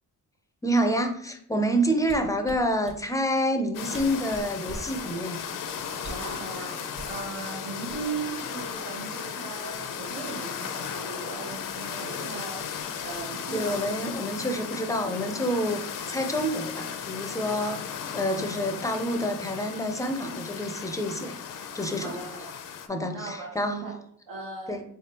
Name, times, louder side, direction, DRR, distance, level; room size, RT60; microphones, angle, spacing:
voice 1, 0.6-5.4 13.5-17.8 18.1-21.4 21.7-22.1 22.9-23.9 24.7-24.8, equal, 10° left, 6 dB, 0.4 m, -28 dB
sound 1, 2.0-3.0 3.7-3.8 3.9-4.9 6.0-6.3 6.9-7.2 7.9-8.4 8.7-9.0, right 1 dB, 40° right, 0.8 m, -41 dB
sound 2, 3.7-22.9, left 7 dB, 70° left, 0.5 m, -36 dB
voice 2, 6.0-13.8 17.6-17.8 21.9-22.6 23.1-24.0 24.3-24.8, right 4 dB, 80° right, -4 dB, 1.0 m, -38 dB
3.7 x 3.3 x 2.8 m, 0.68 s
cardioid pair, 110°, 34 cm